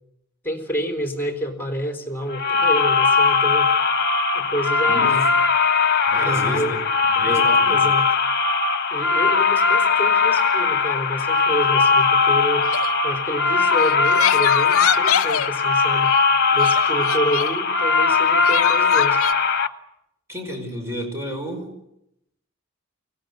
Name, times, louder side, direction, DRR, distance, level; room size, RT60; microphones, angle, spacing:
voice 1, 0.4-3.7 4.3-5.3 6.2-6.8 7.1-8.1 8.9-12.7 13.0-16.1 16.5-19.2, equal, 10° left, 4 dB, 4.0 m, -28 dB
sound 1, 2.3-19.7, left 4 dB, 50° left, 1.3 m, -19 dB
voice 2, 4.9-5.2 6.1-6.8 7.2-7.8 20.3-21.7, equal, 15° right, 3 dB, 5.4 m, -31 dB
Crying sobbing, 12.6-12.9 13.8-15.5 16.6-17.6 18.4-19.3, left 8 dB, 75° left, 0.8 m, -24 dB
23.5 x 19.0 x 9.7 m, 0.82 s
head